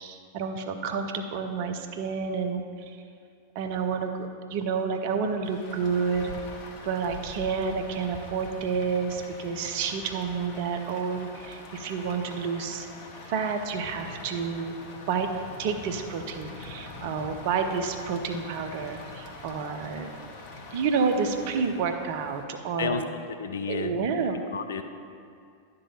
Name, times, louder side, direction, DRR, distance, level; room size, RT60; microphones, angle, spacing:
voice 1, 0.0-3.0 3.5-6.3 6.8-12.9 13.3-14.7 15.1-15.3 15.6-20.1 20.7-23.1 23.7-24.4, right 5 dB, 50° right, 5 dB, 0.6 m, -29 dB
Rain, 5.4-22.4, left 2 dB, 45° left, 0.9 m, -43 dB
voice 2, 23.4-24.0 24.5-24.8, left 6 dB, 65° left, 8 dB, 0.4 m, -30 dB
11.0 x 3.8 x 5.7 m, 2.3 s
figure-of-eight pair, 90°, 0 cm